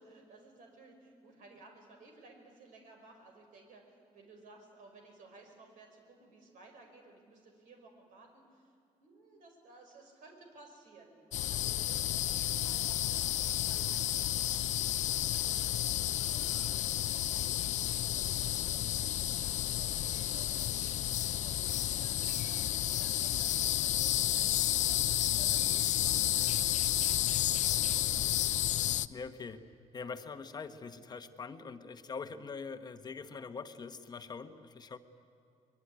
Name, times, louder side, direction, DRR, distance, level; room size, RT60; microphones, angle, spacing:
voice 1, 0.0-11.2 11.5-14.4 14.7-21.0 21.4-28.2, right 3 dB, 75° right, 3 dB, 5.5 m, -57 dB
sound 1, 11.3-29.1, left 12 dB, 65° left, 0.6 m, -31 dB
voice 2, 29.1-35.0, left 5 dB, 30° left, 8 dB, 1.1 m, -43 dB
23.5 x 22.0 x 9.7 m, 2.5 s
cardioid pair, 140°, 13 cm